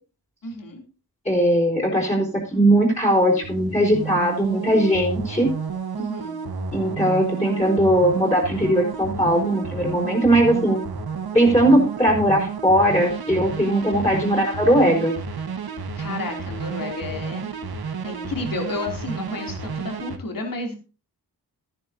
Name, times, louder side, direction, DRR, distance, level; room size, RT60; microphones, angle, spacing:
voice 1, 0.4-0.8 6.0-6.4 15.9-17.5 18.0-20.8, left 3 dB, 60° left, 2 dB, 3.0 m, -31 dB
voice 2, 1.2-5.5 6.7-10.8 11.3-15.1, right 1 dB, 15° left, 0 dB, 4.1 m, -19 dB
sound 1, 2.4-20.2, right 5 dB, 75° right, 1.5 m, -32 dB
14.5 x 10.5 x 2.8 m, 0.33 s
wide cardioid pair, 135°, 38 cm